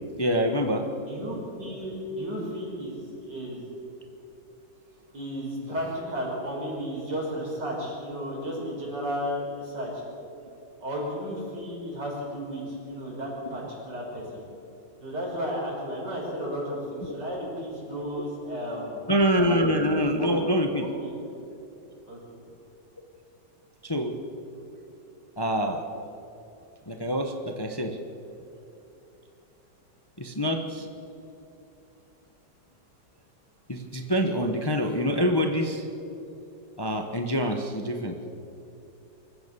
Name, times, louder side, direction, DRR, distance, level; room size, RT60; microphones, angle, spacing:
voice 1, 0.2-0.9 17.1-17.2 19.1-20.9 23.8-24.1 25.4-25.8 26.9-28.0 30.2-30.9 33.7-35.9 36.8-38.2, equal, 15° left, 4 dB, 1.1 m, -25 dB
voice 2, 0.9-3.7 5.1-10.0 10.8-14.4 15.0-19.1 20.1-20.3 20.8-21.2 22.1-22.2, equal, 75° right, -3 dB, 6.8 m, -33 dB
25.5 x 14.5 x 7.0 m, 2.8 s
omnidirectional pair, 1.9 m